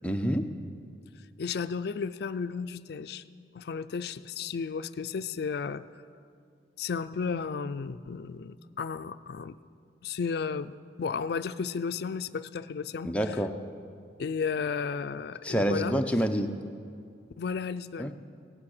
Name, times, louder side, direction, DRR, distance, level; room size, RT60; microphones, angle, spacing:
voice 1, 0.0-0.4 13.0-13.5 15.4-16.5 18.0-18.1, equal, 5° left, 5 dB, 0.6 m, -27 dB
voice 2, 1.4-3.2 3.5-5.8 6.8-9.6 10.0-13.1 14.2-15.9 17.4-18.1, left 5 dB, 60° left, 13 dB, 0.4 m, -33 dB
17.5 x 8.7 x 6.5 m, 2.3 s
head